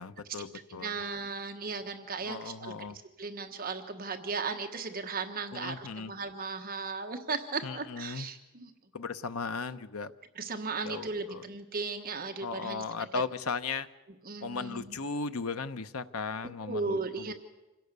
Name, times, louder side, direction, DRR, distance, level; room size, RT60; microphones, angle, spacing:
voice 1, 0.0-1.0 2.2-3.0 5.5-6.1 7.6-8.3 8.9-10.1 10.8-11.5 12.4-13.9 14.4-17.3, left 4 dB, 85° left, 11 dB, 0.9 m, -36 dB
voice 2, 0.8-2.7 3.2-8.7 10.4-12.8 14.2-14.9 16.7-17.3, right 4 dB, 45° right, 6 dB, 1.3 m, -36 dB
26.5 x 16.5 x 6.8 m, 1.1 s
head